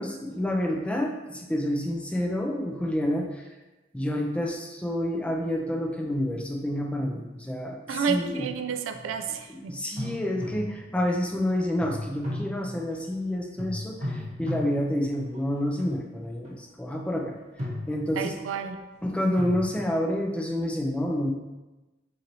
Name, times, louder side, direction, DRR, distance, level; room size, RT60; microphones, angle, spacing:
voice 1, 0.0-3.5 3.9-8.5 9.5-17.4 17.9-18.3 19.0-21.3, left 1 dB, 5° left, 1 dB, 0.3 m, -29 dB
voice 2, 7.9-9.8 18.2-18.8 19.3-19.4, right 6 dB, 85° right, 7 dB, 0.3 m, -30 dB
sound 1, 8.9-9.3 10.0-11.1 11.8-13.2 13.6-15.9 16.4-16.7 17.4-18.5 19.4-19.7, left 1 dB, 35° right, 0.8 m, -35 dB
4.1 x 3.0 x 2.6 m, 1.1 s
head